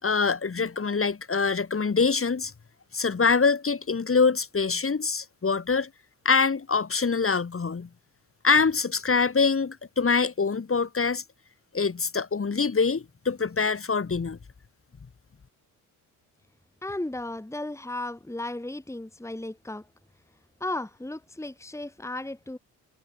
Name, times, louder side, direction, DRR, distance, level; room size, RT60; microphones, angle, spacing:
voice 1, 0.0-2.5 2.9-5.9 6.2-7.9 8.4-11.2 11.7-14.4, left 5 dB, 30° left, 2.8 m, -24 dB
voice 2, 16.8-19.9 20.6-22.6, left 2 dB, 5° left, 2.3 m, -35 dB
hypercardioid pair, 50°, 45 cm